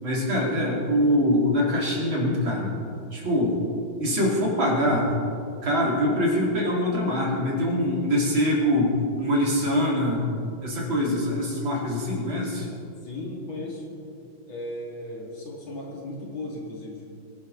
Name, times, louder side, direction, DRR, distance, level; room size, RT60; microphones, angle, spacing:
voice 1, 0.0-2.7 3.1-3.6 4.0-5.1 5.6-10.3 10.6-12.7, equal, 85° right, -3 dB, 3.9 m, -24 dB
voice 2, 13.0-13.8 14.5-17.0, left 1 dB, 90° left, -3 dB, 3.7 m, -36 dB
22.0 x 11.0 x 4.1 m, 2.5 s
omnidirectional pair, 2.1 m